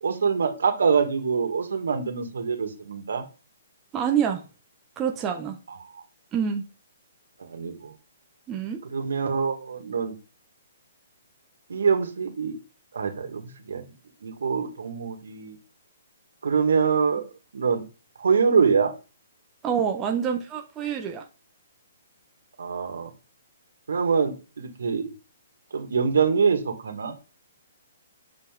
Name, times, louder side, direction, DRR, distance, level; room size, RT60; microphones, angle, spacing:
voice 1, 0.0-3.2 5.9-6.0 7.4-7.9 8.9-10.1 11.7-12.6 12.9-13.8 14.2-15.6 16.4-17.8 18.2-18.9 22.6-23.1 23.9-25.1 25.7-27.2, right 5 dB, 85° right, 5 dB, 2.0 m, -25 dB
voice 2, 3.9-4.4 5.0-5.6 6.3-6.6 8.5-8.8 19.6-21.2, right 8 dB, 15° right, 2 dB, 0.7 m, -26 dB
6.7 x 5.5 x 3.8 m, 0.32 s
hypercardioid pair, 170°, 0 cm